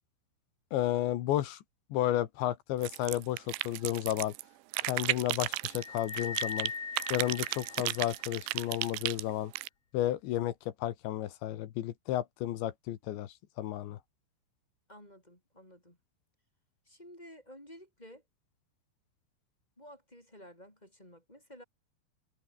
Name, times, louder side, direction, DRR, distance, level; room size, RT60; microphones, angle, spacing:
voice 1, 0.7-1.6 1.9-4.3 4.8-6.7 7.1-9.5 9.9-10.5 10.8-13.3 13.6-14.0, left 13 dB, 70° left, 3.4 m, -32 dB
sound 1, 2.8-4.4 4.7-6.7 7.0-9.7, right 20 dB, 80° right, 2.7 m, -34 dB
sound 2, 5.7-8.4, left 5 dB, 35° left, 4.2 m, -40 dB
voice 2, 14.9-16.0 16.8-18.2 19.8-21.6, equal, 10° left, 5.2 m, -52 dB
omnidirectional pair, 5.9 m